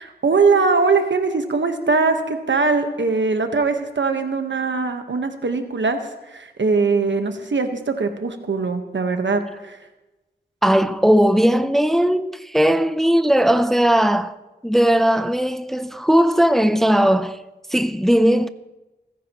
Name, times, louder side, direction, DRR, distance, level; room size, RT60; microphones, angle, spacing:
voice 1, 0.2-6.0 6.3-9.8, right 4 dB, 80° right, 1.2 m, -21 dB
voice 2, 10.6-14.4 14.6-17.4 17.7-18.5, equal, ahead, 0.5 m, -18 dB
29.5 x 10.0 x 3.0 m
wide cardioid pair, 65°, 19 cm